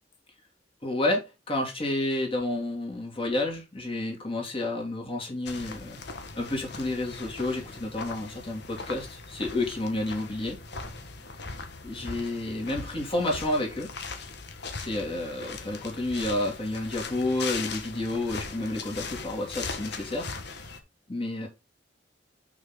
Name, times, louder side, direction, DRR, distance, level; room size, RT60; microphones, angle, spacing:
voice 1, 0.8-6.0 6.3-10.6 11.8-13.9 14.7-20.3 21.1-21.5, left 2 dB, 30° left, 2.8 m, -30 dB
sound 1, 5.5-20.8, left 4 dB, 65° left, 1.4 m, -39 dB
6.1 x 6.1 x 3.8 m
head